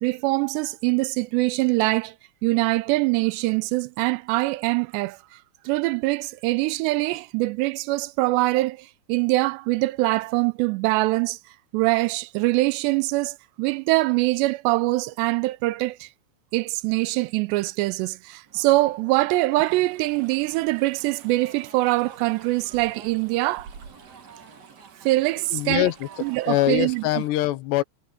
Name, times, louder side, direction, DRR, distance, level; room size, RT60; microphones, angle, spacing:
voice 1, 0.0-2.1 2.4-5.2 5.7-11.4 11.7-16.1 16.5-23.7 25.1-25.9 26.2-27.2, right 21 dB, 85° right, 2.8 m, -23 dB
sound 1, 18.5-26.9, right 5 dB, 35° right, 1.9 m, -51 dB
Stream, 19.6-27.3, right 6 dB, 55° right, 4.2 m, -50 dB
voice 2, 25.5-27.8, left 16 dB, 80° left, 3.1 m, -24 dB
omnidirectional pair, 4.9 m